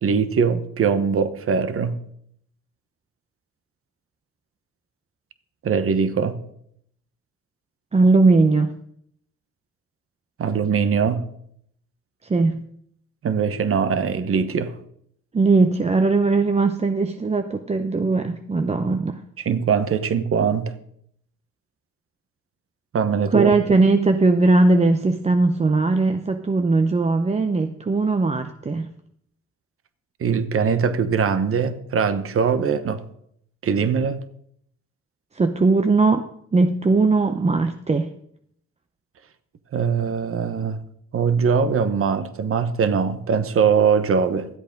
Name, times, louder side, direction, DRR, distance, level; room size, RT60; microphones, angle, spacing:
voice 1, 0.0-2.0 5.6-6.4 10.4-11.3 13.2-14.7 19.4-20.7 22.9-23.5 30.2-33.0 33.6-34.2 39.7-40.8 41.1-44.5, right 6 dB, 45° right, 1.0 m, -21 dB
voice 2, 7.9-8.7 12.2-12.6 15.3-19.2 23.3-28.9 35.3-38.1, right 3 dB, 20° right, 0.6 m, -19 dB
13.0 x 8.0 x 5.2 m
cardioid pair, 90°, 30 cm